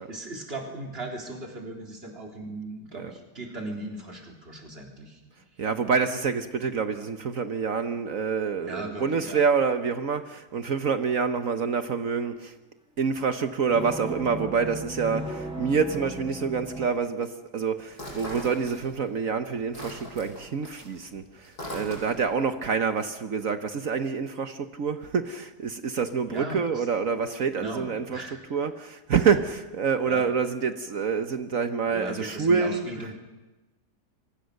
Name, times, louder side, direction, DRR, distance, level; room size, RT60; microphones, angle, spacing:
voice 1, 0.0-5.2 8.6-9.4 26.3-26.9 27.6-28.4 30.0-30.3 31.9-33.2, right 2 dB, 35° right, 1 dB, 3.8 m, -37 dB
voice 2, 5.6-12.5 13.0-33.1, right 5 dB, 55° right, 9 dB, 1.4 m, -27 dB
sound 1, 13.7-16.9, right 1 dB, 5° right, 5.2 m, -36 dB
sound 2, 17.9-19.2 19.5-22.4, equal, 65° left, 7.6 m, -40 dB
27.0 x 24.5 x 6.6 m, 1.1 s
omnidirectional pair, 1.8 m